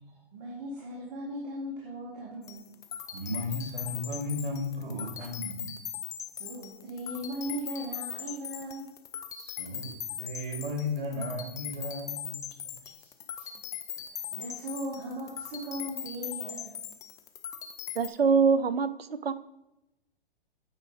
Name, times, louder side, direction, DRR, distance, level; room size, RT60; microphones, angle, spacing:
voice 1, 0.3-2.7 3.0-3.3 6.3-8.9 12.9-13.1 13.3-13.5 14.0-16.8, equal, 40° right, 2.3 m, -38 dB
sound 1, 2.4-18.1, left 9 dB, 10° left, 0.4 m, -40 dB
voice 2, 3.1-5.7 9.3-12.4, left 2 dB, 60° right, 3.2 m, -35 dB
voice 3, 18.0-19.3, right 5 dB, 85° right, 0.7 m, -24 dB
8.9 x 4.9 x 4.9 m
hypercardioid pair, 120°, 29 cm